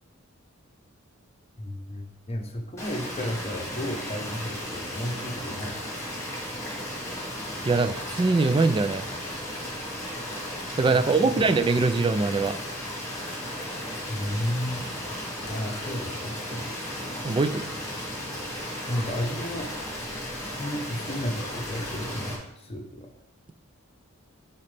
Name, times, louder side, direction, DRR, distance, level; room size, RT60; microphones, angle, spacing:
voice 1, 1.6-5.9 10.9-11.4 14.1-14.9 15.4-16.7 18.9-19.7 20.4-23.1, left 1 dB, 30° left, 4 dB, 0.9 m, -33 dB
sound 1, 2.8-22.3, left 1 dB, 15° left, 2.0 m, -35 dB
voice 2, 7.6-9.1 10.8-12.5 17.2-17.7, right 3 dB, 25° right, 11 dB, 0.3 m, -22 dB
9.7 x 4.3 x 3.4 m, 0.86 s
head